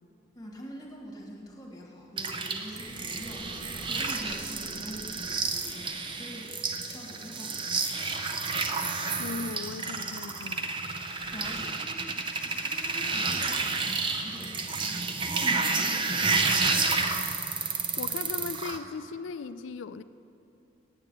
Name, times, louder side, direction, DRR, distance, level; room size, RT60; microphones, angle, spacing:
voice 1, 0.3-6.5 6.8-7.9 11.3-16.9, equal, 20° left, -1 dB, 1.5 m, -44 dB
sound 1, 2.2-18.8, right 4 dB, 25° right, 0.5 m, -30 dB
sound 2, 2.8-6.0 6.4-6.5 7.8-9.7 10.0-10.1 11.2-11.6, equal, 5° right, 1.7 m, -50 dB
voice 2, 9.1-10.7 18.0-20.0, left 5 dB, 70° left, 13 dB, 0.3 m, -38 dB
8.9 x 8.0 x 8.8 m, 2.7 s
head